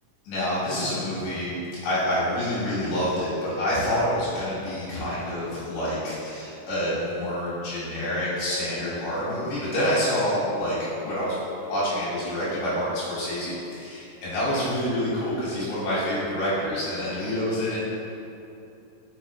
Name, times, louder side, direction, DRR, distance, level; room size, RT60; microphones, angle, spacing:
voice 1, 0.2-1.6 1.8-11.4 11.6-17.8, equal, 85° left, -10 dB, 3.4 m, -27 dB
6.0 x 5.5 x 3.0 m, 2.7 s
omnidirectional pair, 3.8 m